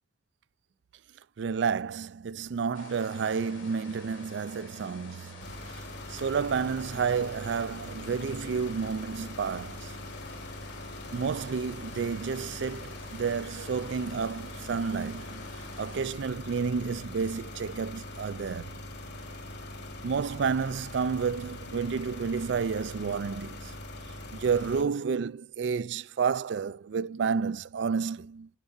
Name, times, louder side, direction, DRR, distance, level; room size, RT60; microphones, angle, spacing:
voice 1, 1.4-5.5 6.1-9.9 11.1-15.5 15.8-18.7 20.0-23.7 24.3-28.5, right 6 dB, 65° right, 0.4 m, -30 dB
sound 1, 2.7-16.1, left 3 dB, 75° left, 4.6 m, -49 dB
sound 2, 5.4-24.8, left 1 dB, 55° left, 2.3 m, -42 dB
10.5 x 8.1 x 2.6 m
head